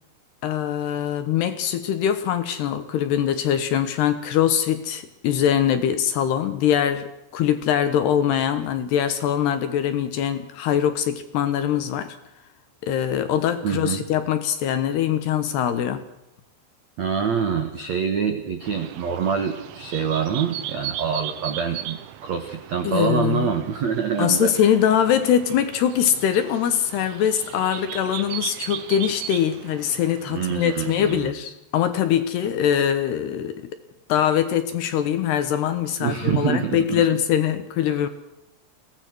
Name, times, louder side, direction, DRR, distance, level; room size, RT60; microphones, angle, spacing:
voice 1, 0.4-12.2 12.8-16.0 22.8-23.5 24.2-33.7 34.1-38.1, left 9 dB, 70° left, 10 dB, 3.0 m, -22 dB
voice 2, 13.6-14.0 17.0-24.5 30.3-31.3 36.0-37.0 37.9-38.0, right 7 dB, 70° right, 6 dB, 1.7 m, -25 dB
sound 1, 18.6-31.3, right 11 dB, 90° right, 3.9 m, -37 dB
23.0 x 17.5 x 6.3 m, 0.87 s
omnidirectional pair, 5.7 m